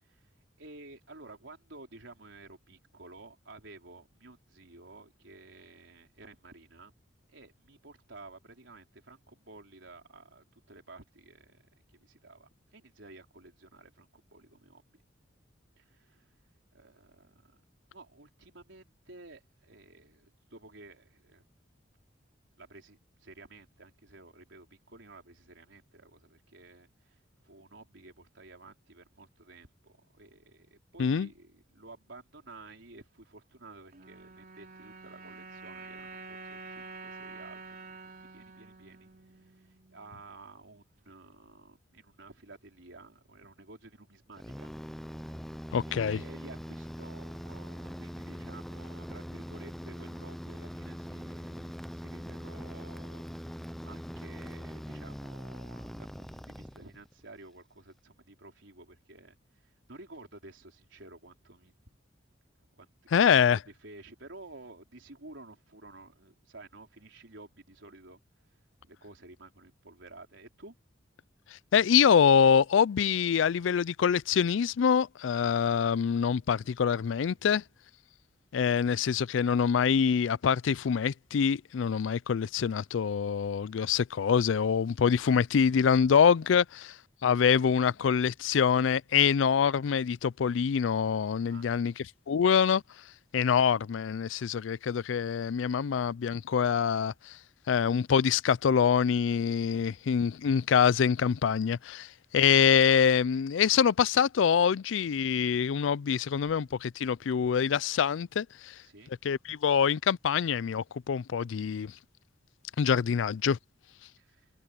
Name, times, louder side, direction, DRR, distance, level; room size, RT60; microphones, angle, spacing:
voice 1, 0.6-6.9 7.3-11.6 12.0-14.8 15.8-16.4 16.7-17.5 17.9-21.5 22.6-37.8 38.2-44.7 45.8-53.5 53.8-61.7 62.8-62.9 63.3-68.2 68.8-70.7 76.0-77.0 77.3-77.4 86.1-86.2 86.5-86.6 91.5-91.8 99.7-100.0 108.8-109.1 114.2-114.5, right 2 dB, 75° right, 4.8 m, -52 dB
sound 1, 33.9-40.3, right 4 dB, 50° right, 3.9 m, -48 dB
sound 2, 44.4-57.2, equal, ahead, 0.6 m, -42 dB
voice 2, 45.7-46.2 63.1-63.6 71.7-77.6 78.5-86.9 87.2-91.9 92.3-92.8 93.3-97.4 97.7-108.7 109.2-111.9 112.8-113.6, left 7 dB, 80° left, 0.4 m, -25 dB
head